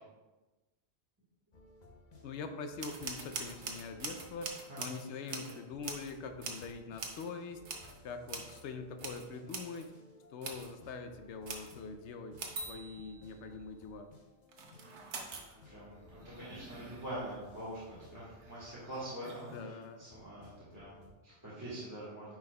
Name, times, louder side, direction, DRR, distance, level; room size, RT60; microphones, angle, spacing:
sound 1, 1.5-21.1, left 2 dB, 45° left, 0.8 m, -59 dB
voice 1, 2.2-7.6 8.0-9.9 10.3-14.1 19.4-20.0, left 4 dB, 90° left, 7 dB, 0.9 m, -44 dB
sound 2, 2.8-6.2 6.4-6.7 7.0-7.3 7.6-8.0 8.3-8.6 8.9-9.9 10.4-10.7 11.5-11.8 12.4-13.4 14.5-15.6 15.9-17.3 18.3-18.6 19.2-19.7, right 4 dB, 80° right, 1.1 m, -44 dB
voice 2, 15.6-22.4, right 1 dB, 15° right, -10 dB, 1.4 m, -45 dB
9.3 x 4.7 x 2.2 m, 1.2 s
omnidirectional pair, 1.1 m